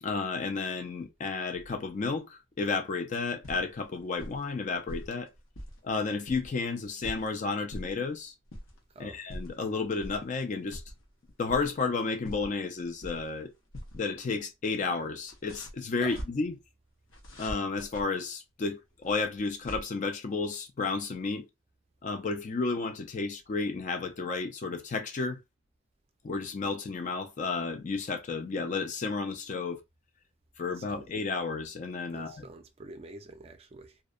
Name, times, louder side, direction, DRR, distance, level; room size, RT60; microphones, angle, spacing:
voice 1, 0.0-5.3 5.8-8.3 9.0-10.8 11.4-13.5 13.9-16.6 17.4-21.5 22.0-25.4 26.2-29.8 30.6-32.5, left 4 dB, 40° left, 0.3 m, -32 dB
sound 1, 3.2-3.8 4.1-4.5 4.9-5.8 6.1-7.3 7.7-8.1 8.5-8.8 9.1-9.6 10.0-10.2 10.6-11.9 12.2-13.4 13.7-14.0 14.3-14.4 15.2-16.3 17.1-18.0 19.0-19.8, equal, 85° left, 0.8 m, -42 dB
voice 2, 30.8-31.1 32.1-34.0, right 2 dB, 30° right, 0.4 m, -46 dB
2.5 x 2.1 x 2.4 m
head